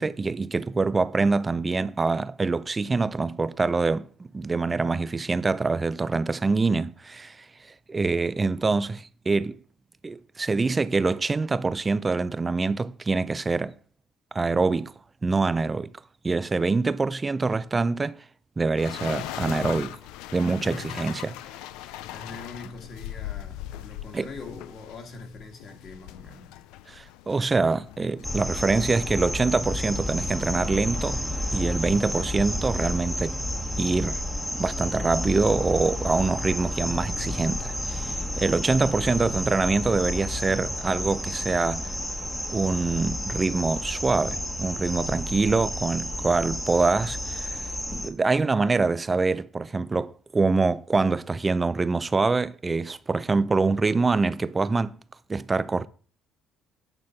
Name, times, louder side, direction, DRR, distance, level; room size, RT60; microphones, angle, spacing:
voice 1, 0.0-4.1 4.3-7.5 7.9-9.6 10.0-13.8 14.3-14.9 15.2-15.9 16.2-18.2 18.6-20.0 20.3-21.3 24.1-24.3 26.9-31.2 31.5-33.4 33.8-34.2 34.5-41.9 42.5-47.6 47.9-55.0 55.3-55.9, right 3 dB, 20° right, 0.4 m, -25 dB
sound 1, 18.8-31.0, left 13 dB, 85° left, 0.4 m, -40 dB
voice 2, 20.6-21.1 21.8-26.5 39.0-39.3, left 3 dB, 50° left, 1.8 m, -43 dB
sound 2, 28.2-48.1, left 1 dB, 5° left, 1.1 m, -31 dB
8.9 x 3.9 x 5.8 m
cardioid pair, 100°, 0 cm